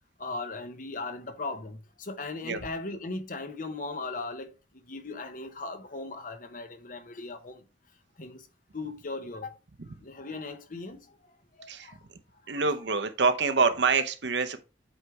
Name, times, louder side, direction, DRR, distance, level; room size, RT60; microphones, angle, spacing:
voice 1, 0.2-7.6 8.2-8.5 8.7-9.5 10.0-11.0 11.6-12.0 12.5-12.6, left 3 dB, 45° left, 0.8 m, -38 dB
voice 2, 12.5-14.6, right 4 dB, 70° right, 0.8 m, -26 dB
8.0 x 3.4 x 4.6 m
head